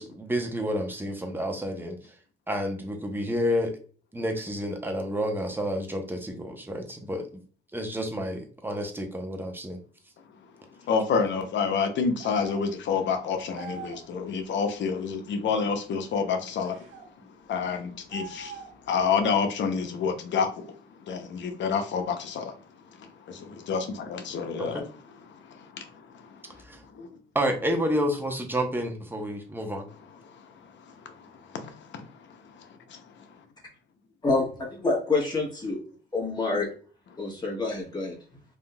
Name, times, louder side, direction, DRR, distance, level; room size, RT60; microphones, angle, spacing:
voice 1, 0.0-2.1 2.5-3.8 4.1-7.3 7.7-9.8 24.6-24.8 26.6-26.8 27.3-29.8, equal, 10° right, 0.8 m, -30 dB
voice 2, 10.9-16.8 17.5-20.8 21.0-22.5 23.0-24.8 25.3-26.5 26.9-27.1 30.3-32.1 32.4-33.0, left 5 dB, 65° left, 0.7 m, -29 dB
sound 1, 12.2-12.7 13.5-14.1 16.6-17.1 18.1-18.9, right 6 dB, 80° right, 0.6 m, -43 dB
voice 3, 34.8-35.8 36.1-36.7 37.2-38.2, left 3 dB, 20° left, 1.4 m, -26 dB
3.6 x 2.6 x 2.3 m
cardioid pair, 90°, 20 cm